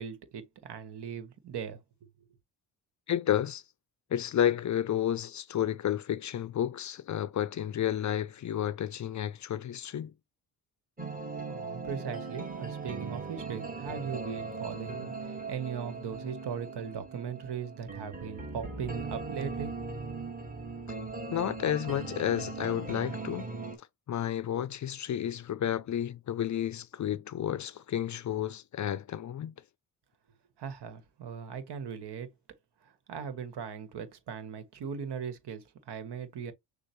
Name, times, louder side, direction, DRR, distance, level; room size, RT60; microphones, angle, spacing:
voice 1, 0.0-1.8 11.4-19.8 30.6-32.3 32.8-36.5, right 7 dB, 65° right, 1.5 m, -39 dB
voice 2, 3.1-3.6 4.1-10.1 21.3-23.5 24.1-29.5, left 10 dB, 45° left, 0.5 m, -31 dB
sound 1, 11.0-23.8, right 4 dB, 20° right, 1.9 m, -39 dB
6.5 x 2.5 x 3.1 m
supercardioid pair, 70°, 43 cm